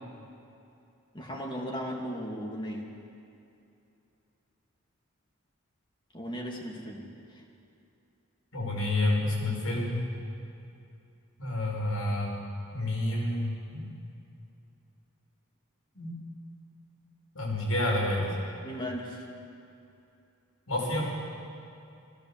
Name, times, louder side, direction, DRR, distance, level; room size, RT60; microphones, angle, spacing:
voice 1, 1.1-2.9 6.1-7.4 18.6-19.3, equal, 20° left, 0 dB, 2.4 m, -37 dB
voice 2, 8.5-10.1 11.4-12.3 12.7-13.9 16.0-16.2 17.3-18.3 20.7-21.1, left 1 dB, 85° left, -2 dB, 5.6 m, -29 dB
22.0 x 16.5 x 7.2 m, 2.7 s
head